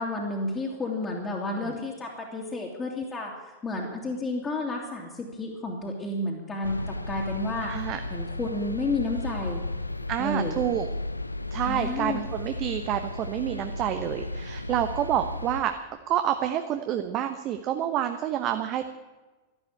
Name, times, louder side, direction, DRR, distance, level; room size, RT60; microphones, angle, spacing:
voice 1, 0.0-7.7 8.1-9.6 10.2-10.6 11.7-12.3, left 2 dB, 20° left, -3 dB, 2.7 m, -31 dB
sound 1, 6.6-15.6, left 2 dB, 85° left, 0.7 m, -34 dB
voice 2, 7.7-8.0 10.1-10.9 11.5-15.7 16.1-18.9, right 11 dB, 35° right, 8 dB, 1.0 m, -28 dB
12.5 x 12.5 x 8.6 m, 1.2 s
figure-of-eight pair, 90°, 0 cm